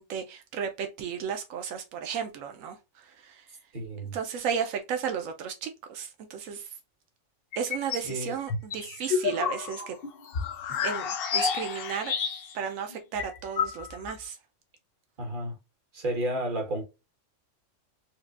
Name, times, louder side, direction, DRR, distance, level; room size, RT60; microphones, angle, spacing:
voice 1, 0.0-3.5 4.1-6.7 7.6-10.0 10.7-12.1 12.5-14.4, right 7 dB, 85° right, 1.0 m, -34 dB
voice 2, 3.7-4.2 8.1-8.3 15.2-15.5 15.9-16.8, right 1 dB, 40° right, 1.4 m, -31 dB
sound 1, 7.5-8.1 8.5-12.7 12.9-13.0 13.2-14.2, left 7 dB, 60° left, 0.7 m, -30 dB
4.8 x 2.2 x 2.3 m
omnidirectional pair, 1.3 m